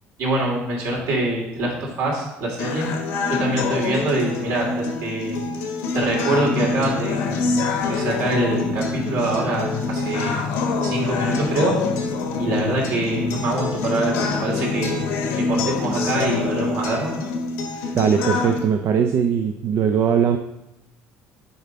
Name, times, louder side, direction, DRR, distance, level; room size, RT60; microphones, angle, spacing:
voice 1, 0.2-2.9 3.3-5.4 5.9-7.2 7.9-10.4 10.8-11.8 12.4-15.1 15.4-17.1, right 1 dB, 65° right, -2 dB, 2.6 m, -24 dB
sound 1, 2.6-18.6, left 3 dB, 85° left, 1.3 m, -26 dB
sound 2, 6.3-16.7, left 5 dB, 50° left, 0.6 m, -31 dB
voice 2, 17.9-20.4, right 7 dB, 50° right, 5 dB, 0.5 m, -20 dB
6.8 x 4.2 x 5.2 m, 0.87 s
cardioid pair, 125°, 5 cm